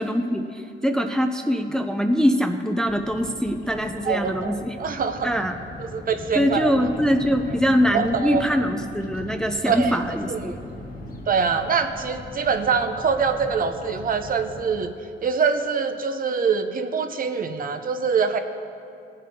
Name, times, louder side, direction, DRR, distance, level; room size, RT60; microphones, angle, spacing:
voice 1, 0.0-4.8 5.2-5.6 6.4-10.6, equal, 5° left, 6 dB, 0.5 m, -23 dB
Bird vocalization bird call bird song, 2.9-14.9, left 2 dB, 45° left, 1.4 m, -39 dB
voice 2, 4.0-5.4 5.8-6.7 7.9-8.4 9.7-10.0 10.3-10.6 11.3-14.9 15.2-18.4, right 5 dB, 45° right, 7 dB, 0.7 m, -24 dB
16.5 x 7.5 x 2.8 m, 2.6 s
cardioid pair, 90°, 20 cm